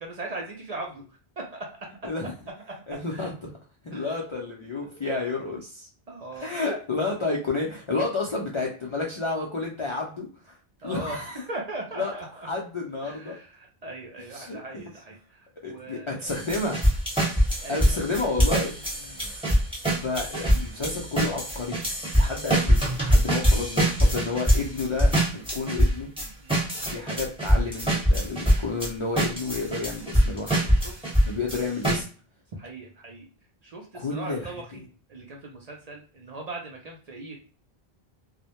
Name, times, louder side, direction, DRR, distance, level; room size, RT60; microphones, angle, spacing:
voice 1, 0.0-1.0 3.1-3.3 3.9-4.1 4.9-5.0 6.1-6.5 10.8-12.3 13.0-16.4 17.6-18.3 19.1-19.2 26.2-26.9 30.5-31.0 32.6-33.3 33.6-34.6 35.1-37.4, right 2 dB, 50° right, 0 dB, 0.5 m, -39 dB
voice 2, 2.0-2.3 2.9-3.5 3.8-5.9 6.3-10.6 10.8-11.5 12.0-13.4 14.3-14.8 15.6-16.8 17.7-18.7 19.0-19.4 19.9-21.8 22.2-26.1 26.9-30.9 31.2-32.0 33.9-34.8, left 3 dB, 50° left, -3 dB, 0.3 m, -31 dB
sound 1, 16.3-28.9 29.2-32.0, equal, 5° right, 1.0 m, -23 dB
2.1 x 2.1 x 2.8 m, 0.40 s
omnidirectional pair, 1.0 m